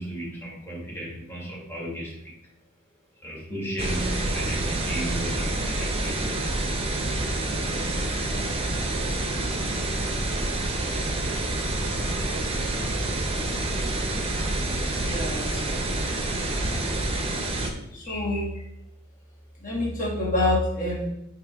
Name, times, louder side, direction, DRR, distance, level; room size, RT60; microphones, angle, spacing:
voice 1, 0.0-2.3 3.2-6.3 12.9-13.2, right 1 dB, 10° left, -4 dB, 1.8 m, -35 dB
sound 1, 3.8-17.7, right 2 dB, 25° right, 0.8 m, -27 dB
voice 2, 15.0-15.6 17.6-18.5 19.6-21.1, left 1 dB, 35° left, -4 dB, 1.6 m, -27 dB
8.9 x 3.1 x 3.5 m, 0.83 s
head